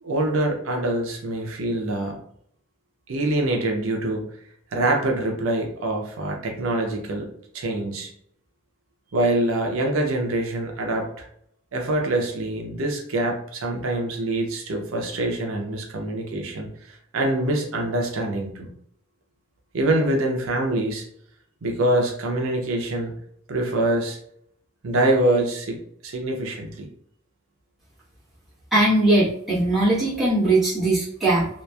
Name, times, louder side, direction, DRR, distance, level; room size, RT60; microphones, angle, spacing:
voice 1, 0.0-2.2 3.1-4.3 4.7-7.3 7.5-8.1 9.1-11.2 11.7-18.7 19.7-21.0 21.6-23.1 23.5-24.2 24.8-25.8 26.0-26.9, right 1 dB, 80° right, 2 dB, 0.6 m, -25 dB
voice 2, 28.7-31.5, right 2 dB, ahead, -11 dB, 1.1 m, -20 dB
2.9 x 2.4 x 2.3 m, 0.69 s
head